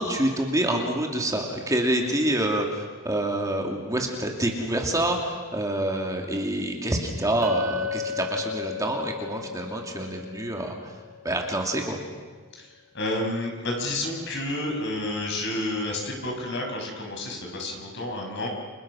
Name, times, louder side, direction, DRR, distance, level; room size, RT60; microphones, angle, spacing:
voice 1, 0.0-10.9 11.2-12.0, right 1 dB, 15° right, 1 dB, 2.6 m, -27 dB
Chink clink, 7.4-11.7, left 4 dB, 70° right, 3.4 m, -34 dB
voice 2, 12.6-18.5, left 1 dB, 55° left, 1 dB, 6.7 m, -30 dB
30.0 x 28.0 x 6.3 m, 1.5 s
head